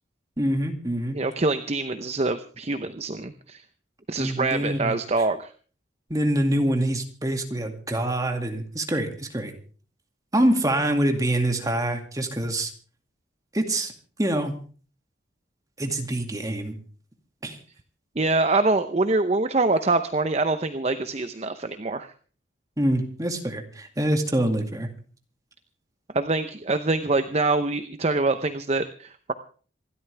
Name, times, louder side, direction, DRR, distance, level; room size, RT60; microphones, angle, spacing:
voice 1, 0.4-1.2 4.2-4.9 6.1-9.5 10.3-12.7 13.5-13.9 14.2-14.6 15.8-16.8 17.4-17.6 22.8-24.9, right 1 dB, 20° right, 4 dB, 2.2 m, -25 dB
voice 2, 1.1-3.6 4.1-5.5 18.2-22.1 26.1-29.3, right 3 dB, 35° right, 10 dB, 0.7 m, -25 dB
27.0 x 12.5 x 3.4 m, 0.41 s
head